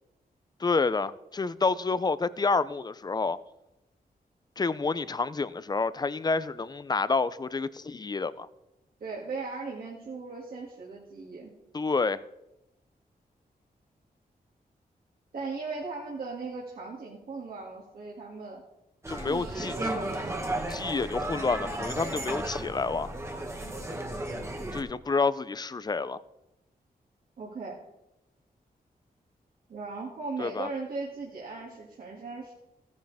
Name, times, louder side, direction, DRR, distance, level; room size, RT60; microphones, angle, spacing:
voice 1, 0.6-3.4 4.6-8.5 11.7-12.2 19.1-19.7 20.7-23.1 24.7-26.2 30.4-30.7, left 4 dB, 25° left, 0.4 m, -29 dB
voice 2, 9.0-11.5 15.3-18.6 19.2-20.5 23.6-23.8 27.4-27.8 29.7-32.5, right 4 dB, 70° right, 2.3 m, -38 dB
sound 1, 19.0-24.8, right 1 dB, 15° right, 1.4 m, -34 dB
16.0 x 10.0 x 3.5 m
wide cardioid pair, 155°, 16 cm